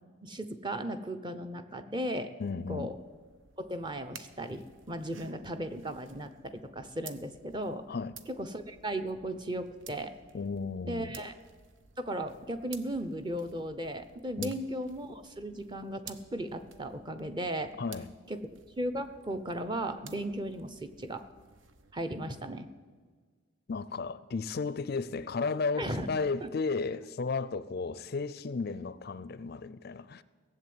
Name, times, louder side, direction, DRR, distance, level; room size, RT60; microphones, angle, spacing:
voice 1, 0.2-2.3 2.7-3.0 3.6-7.9 8.3-10.1 10.9-11.4 12.0-17.7 18.3-21.2 21.9-22.7 25.8-26.1 26.4-26.5, right 1 dB, 20° right, 0.8 m, -36 dB
voice 2, 2.4-2.9 7.9-8.1 10.3-11.2 14.4-14.5 17.8-18.1 23.7-30.2, left 4 dB, 50° left, 0.4 m, -34 dB
sound 1, 2.5-21.9, right 6 dB, 70° right, 1.0 m, -54 dB
17.0 x 7.7 x 9.5 m
head